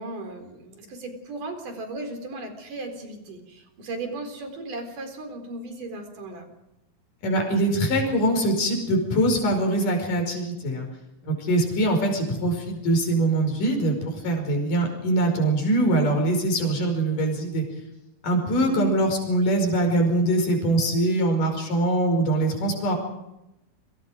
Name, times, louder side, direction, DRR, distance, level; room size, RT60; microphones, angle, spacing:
voice 1, 0.0-6.5 18.5-19.0, right 2 dB, 65° right, 5 dB, 5.8 m, -36 dB
voice 2, 7.2-10.9 11.2-17.7 18.2-22.9, right 1 dB, 65° left, 3 dB, 6.8 m, -23 dB
29.0 x 25.5 x 5.1 m, 0.90 s
omnidirectional pair, 4.1 m